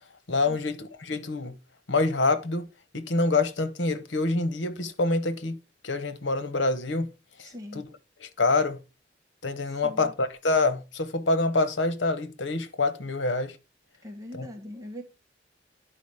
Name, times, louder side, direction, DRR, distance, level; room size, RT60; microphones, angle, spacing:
voice 1, 0.3-1.5 1.9-2.7 2.9-5.6 5.8-7.1 7.4-7.9 8.2-8.8 9.4-13.6 14.3-14.5, left 3 dB, 85° left, 1.1 m, -26 dB
voice 2, 7.4-7.9 9.8-10.1 14.0-15.0, left 1 dB, 20° right, 1.9 m, -41 dB
10.5 x 5.0 x 4.8 m
head